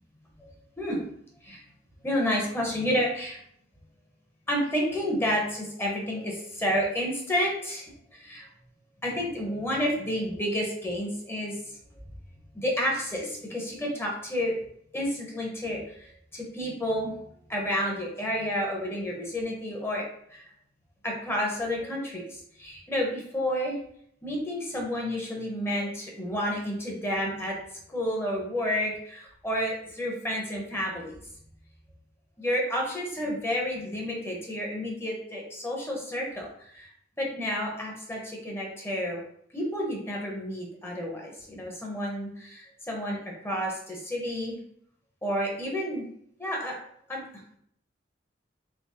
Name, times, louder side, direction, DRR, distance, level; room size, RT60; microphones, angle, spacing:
voice 1, 0.4-1.1 1.4-1.6 2.0-3.4 4.5-8.5 9.0-11.8 12.5-14.5 14.9-17.1 17.5-20.0 20.3-20.4 21.0-23.8 24.2-27.6 27.9-31.2 32.4-36.9 37.2-39.2 39.5-43.2 43.4-44.6 45.2-46.1 46.4-46.8 47.1-47.2, equal, 15° left, -2 dB, 0.8 m, -30 dB
3.4 x 2.9 x 2.8 m, 0.68 s
head